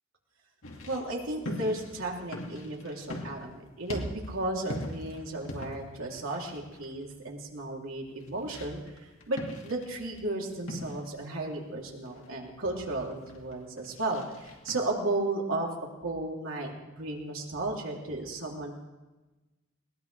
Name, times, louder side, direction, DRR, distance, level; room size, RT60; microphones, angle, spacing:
sound 1, 0.6-14.8, left 1 dB, 75° left, 2.6 m, -42 dB
voice 1, 0.9-15.7 16.0-16.7 17.0-18.7, right 2 dB, 75° right, -1 dB, 3.3 m, -34 dB
21.0 x 20.5 x 3.4 m, 1.1 s
head